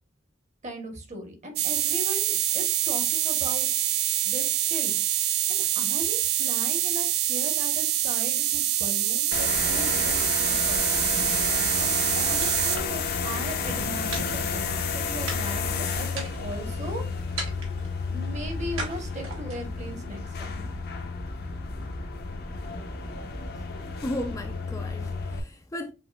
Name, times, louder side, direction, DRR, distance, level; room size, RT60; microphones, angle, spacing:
voice 1, 0.6-3.7 4.2-5.0 5.5-11.1 11.8-17.1 18.1-20.9, equal, 35° right, 1.1 m, -38 dB
sound 1, 1.6-12.8, right 13 dB, 55° right, 0.4 m, -25 dB
sound 2, 9.3-25.4, left 5 dB, 55° left, 0.7 m, -31 dB
sound 3, 12.4-13.3 14.1-14.9 15.3-15.7 16.1-16.7 17.4-17.9 18.8-19.7, right 3 dB, 80° right, 1.4 m, -38 dB
voice 2, 24.0-25.9, left 1 dB, 15° left, 0.4 m, -35 dB
7.0 x 2.6 x 2.3 m
head